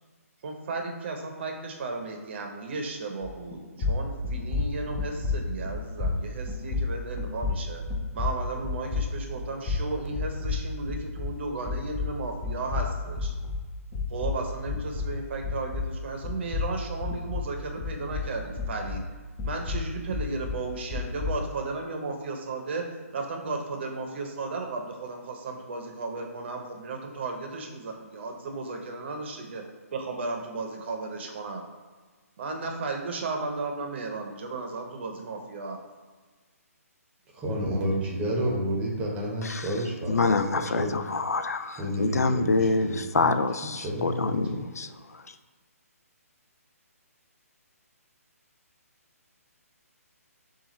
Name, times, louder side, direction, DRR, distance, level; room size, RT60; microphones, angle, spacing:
voice 1, 0.4-7.8 8.1-13.3 14.1-19.0 19.4-29.6 29.9-31.6 32.4-35.8, right 3 dB, 45° right, 3 dB, 0.7 m, -34 dB
sound 1, 3.2-3.5 3.8-11.4 11.7-16.0 16.2-19.1 19.4-21.4, left 4 dB, 20° left, 0.8 m, -31 dB
voice 2, 37.3-40.3 40.7-40.9 41.8-43.3 43.8-44.6, equal, 15° right, -3 dB, 0.9 m, -30 dB
voice 3, 40.1-44.9 45.1-45.2, left 3 dB, 80° left, 9 dB, 0.3 m, -26 dB
6.9 x 2.4 x 3.1 m, 1.4 s
figure-of-eight pair, 145°, 8 cm